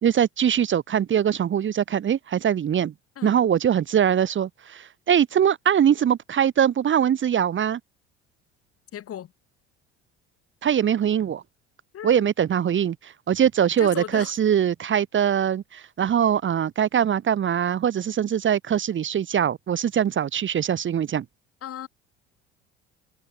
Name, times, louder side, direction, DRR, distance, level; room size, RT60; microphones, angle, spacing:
voice 1, 0.0-2.9 3.2-7.8 10.6-11.4 12.0-21.2, right 9 dB, 35° right, 1.1 m, -22 dB
voice 2, 8.9-9.3 11.9-12.3 13.8-14.3 21.6-21.9, left 10 dB, 45° left, 1.6 m, -36 dB
hypercardioid pair, 65°, 33 cm